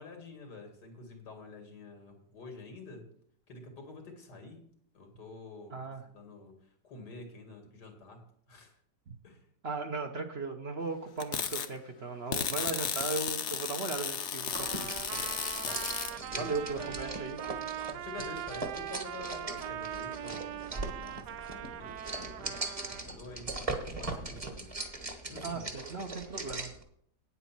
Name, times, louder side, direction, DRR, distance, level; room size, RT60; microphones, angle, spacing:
voice 1, 0.0-3.1 3.5-4.6 4.9-5.8 6.1-6.6 6.8-8.2 8.5-8.7 9.2-9.5 15.6-15.9 16.2-16.9 17.9-22.4 22.8-23.7 24.0-24.8 25.3-25.6, left 3 dB, 90° left, 4 dB, 2.8 m, -48 dB
voice 2, 5.7-6.1 9.1-9.2 9.6-15.2 16.4-17.7 25.4-26.7, right 4 dB, 45° right, 5 dB, 1.0 m, -37 dB
sound 1, 11.2-11.7 12.3-16.1, left 7 dB, 55° left, 1.0 m, -34 dB
Trumpet, 14.5-23.0, right 11 dB, 85° right, 1.2 m, -41 dB
sound 2, 14.6-26.8, right 2 dB, 25° right, 1.2 m, -40 dB
9.3 x 8.2 x 6.0 m, 0.66 s
omnidirectional pair, 1.8 m